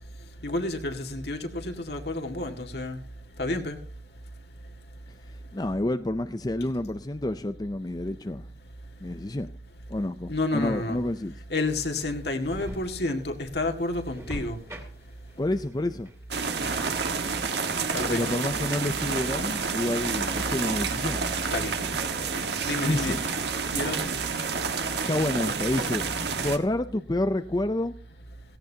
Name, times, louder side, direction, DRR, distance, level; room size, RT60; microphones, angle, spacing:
voice 1, 0.4-3.0 3.4-3.8 10.3-11.0 11.5-14.6 17.9-18.2 21.5-21.7 22.7-23.1 23.7-24.1, left 2 dB, 60° left, 2.0 m, -30 dB
voice 2, 5.3-8.5 9.0-9.5 9.9-11.4 15.4-16.1 18.1-21.2 22.8-23.2 25.1-26.1 26.3-28.0, left 1 dB, 20° left, 0.5 m, -29 dB
sound 1, 11.6-17.6, equal, 15° right, 2.6 m, -44 dB
sound 2, 16.3-26.6, right 5 dB, 65° right, 1.5 m, -29 dB
17.0 x 16.5 x 2.8 m
head